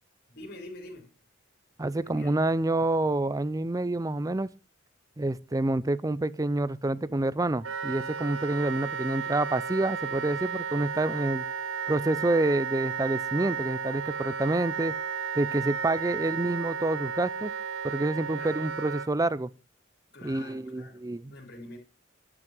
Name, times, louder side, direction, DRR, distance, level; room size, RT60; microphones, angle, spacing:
voice 1, 0.3-1.1 2.0-2.4 16.1-16.7 18.4-18.5 20.1-21.0 21.3-21.8, left 1 dB, 55° left, 4.4 m, -46 dB
voice 2, 1.8-4.5 5.2-11.4 11.9-14.9 15.3-17.5 17.8-19.5 20.2-21.3, right 2 dB, 15° right, 0.5 m, -28 dB
Wind instrument woodwind instrument, 7.6-19.1, right 6 dB, 80° right, 0.8 m, -33 dB
12.0 x 6.2 x 7.8 m
head